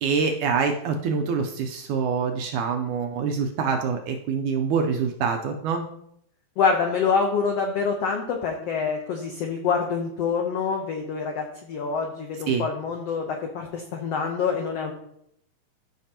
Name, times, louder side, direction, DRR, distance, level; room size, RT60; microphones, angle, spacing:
voice 1, 0.0-5.9 12.5-12.7, right 5 dB, 80° right, 4 dB, 1.8 m, -25 dB
voice 2, 6.6-14.9, left 5 dB, 90° left, 2 dB, 1.3 m, -26 dB
14.0 x 5.9 x 2.9 m, 0.72 s
omnidirectional pair, 4.0 m